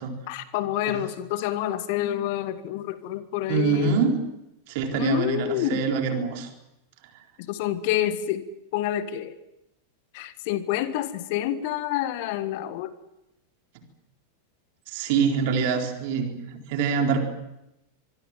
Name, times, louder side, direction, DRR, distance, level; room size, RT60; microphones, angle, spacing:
voice 1, 0.3-4.0 4.9-5.8 7.4-8.5 8.7-9.4 10.1-12.9, left 12 dB, 50° left, 13 dB, 1.5 m, -28 dB
voice 2, 3.5-4.2 4.7-6.5 14.9-17.2, right 6 dB, 50° right, 4 dB, 4.2 m, -25 dB
25.5 x 22.5 x 7.5 m, 0.88 s
figure-of-eight pair, 90°, 0 cm